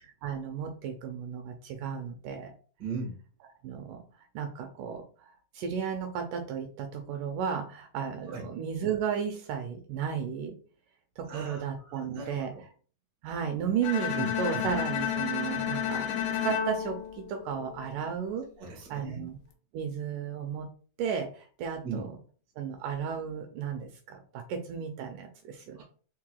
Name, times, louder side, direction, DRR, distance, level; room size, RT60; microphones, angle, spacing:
voice 1, 0.2-2.5 3.6-4.0 4.4-5.0 5.6-10.6 11.2-12.5 13.2-16.0 16.4-18.5 18.9-19.4 19.7-20.7 21.0-22.1 22.6-25.8, right 7 dB, 80° right, 5 dB, 2.1 m, -34 dB
voice 2, 2.8-3.2 8.3-8.4 11.3-12.6 14.1-14.6 18.6-19.2 21.8-22.1 25.7-25.8, right 4 dB, 45° right, -1 dB, 1.6 m, -38 dB
Bowed string instrument, 13.8-18.0, left 9 dB, 80° left, 2.1 m, -32 dB
4.7 x 4.4 x 2.2 m, 0.40 s
omnidirectional pair, 3.9 m